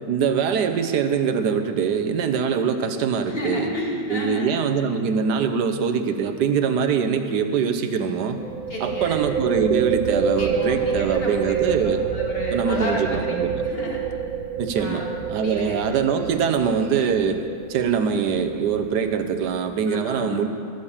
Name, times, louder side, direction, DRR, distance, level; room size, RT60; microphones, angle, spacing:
voice 1, 0.1-3.7 4.1-8.4 8.8-12.0 12.5-13.5 14.6-17.4 17.7-20.5, right 6 dB, 90° right, 8 dB, 1.4 m, -23 dB
voice 2, 3.3-4.5 8.7-9.3 10.3-13.4 13.6-14.0 14.8-15.1 15.4-15.8 19.9-20.3, left 1 dB, 35° left, -3 dB, 2.4 m, -31 dB
sound 1, 5.3-5.5 5.8-5.9 8.4-19.7, right 6 dB, 65° right, 0.8 m, -28 dB
17.0 x 6.6 x 7.3 m, 2.3 s
omnidirectional pair, 1.7 m